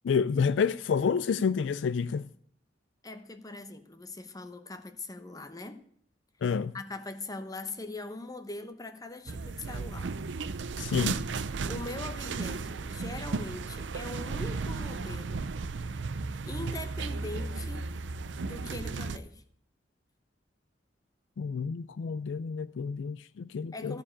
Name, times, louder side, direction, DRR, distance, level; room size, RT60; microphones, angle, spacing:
voice 1, 0.0-2.2 6.4-6.7 10.8-11.2 21.4-24.0, left 6 dB, 80° left, 0.4 m, -29 dB
voice 2, 3.0-5.8 6.7-10.1 11.7-15.5 16.5-17.9 18.4-19.4 23.7-24.0, left 2 dB, 20° left, 0.9 m, -41 dB
sound 1, 9.3-19.2, right 4 dB, 85° right, 0.6 m, -35 dB
14.0 x 4.8 x 8.5 m
head